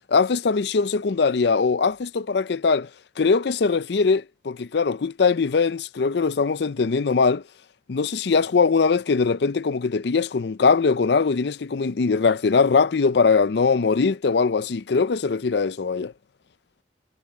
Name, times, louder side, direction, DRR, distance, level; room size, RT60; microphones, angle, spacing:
voice 1, 0.1-2.9 3.2-7.4 7.9-16.1, left 4 dB, 60° left, 0.5 m, -21 dB
head